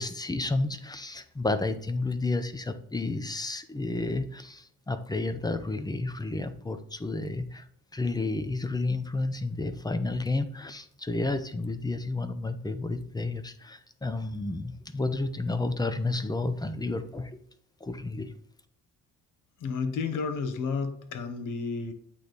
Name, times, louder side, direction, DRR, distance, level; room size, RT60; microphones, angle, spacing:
voice 1, 0.0-7.7 7.9-17.3 17.8-18.3, left 2 dB, 10° left, 10 dB, 0.5 m, -31 dB
voice 2, 19.6-21.9, left 4 dB, 65° left, 8 dB, 1.0 m, -31 dB
8.5 x 3.3 x 4.0 m, 0.67 s
cardioid pair, 120°, 34 cm